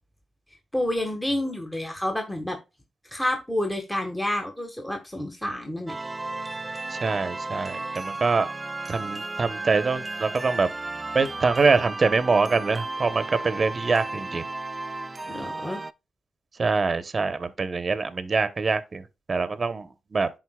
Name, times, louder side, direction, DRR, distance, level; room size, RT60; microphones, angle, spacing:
voice 1, 0.7-2.6 3.1-5.9 15.3-15.8, left 1 dB, 10° left, 1.5 m, -29 dB
sound 1, 5.9-15.9, right 2 dB, 25° right, 0.3 m, -34 dB
voice 2, 6.9-8.5 8.9-10.7 11.1-14.4 16.6-20.3, right 4 dB, 40° right, 0.9 m, -24 dB
11.0 x 3.9 x 2.3 m
cardioid pair, 70°, 0 cm